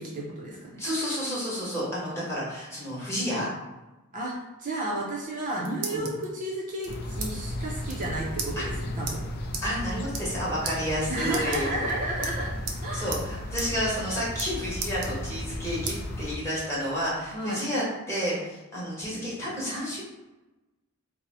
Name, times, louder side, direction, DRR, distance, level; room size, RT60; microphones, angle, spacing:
voice 1, 0.0-0.8 4.1-4.3 4.6-9.2 11.1-12.5 12.8-13.1 17.3-17.6, right 1 dB, 35° right, -4 dB, 0.5 m, -32 dB
voice 2, 0.8-3.5 5.9-6.1 8.6-8.7 9.6-11.9 12.9-20.0, equal, 10° left, -7 dB, 1.1 m, -30 dB
sound 1, 5.2-6.3 6.8-7.3 7.6-7.7 7.9-8.1 8.4-8.5 9.1-9.2 9.5-9.7 10.0-10.4 10.6-10.8 11.3-11.9 12.2-12.8 13.1-13.2 13.6-13.7 14.0-14.5 14.8-15.5 15.9-16.0 16.5-17.4, right 5 dB, 90° right, 0.5 m, -35 dB
sound 2, 6.9-16.4, left 1 dB, 45° left, 0.3 m, -35 dB
2.7 x 2.0 x 4.0 m, 1.1 s
head